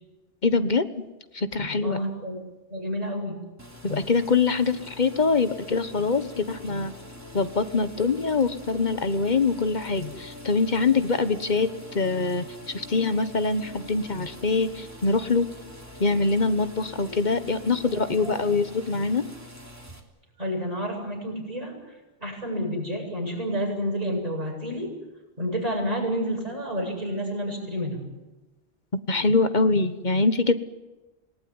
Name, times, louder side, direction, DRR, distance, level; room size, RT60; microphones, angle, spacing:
voice 1, 0.4-1.0 1.3-2.0 3.8-6.9 7.3-15.5 16.0-19.2 29.1-30.5, left 4 dB, 45° left, 11 dB, 1.3 m, -24 dB
voice 2, 1.8-2.4 2.7-3.4 17.0-17.1 17.9-18.3 20.4-21.9 22.2-24.9 25.4-28.0, equal, 35° right, 0 dB, 8.0 m, -30 dB
sound 1, 3.6-20.0, left 1 dB, 15° right, 3.2 m, -46 dB
sound 2, 4.7-19.4, left 1 dB, 80° left, 6.3 m, -48 dB
27.5 x 19.0 x 9.7 m, 1.1 s
omnidirectional pair, 1.1 m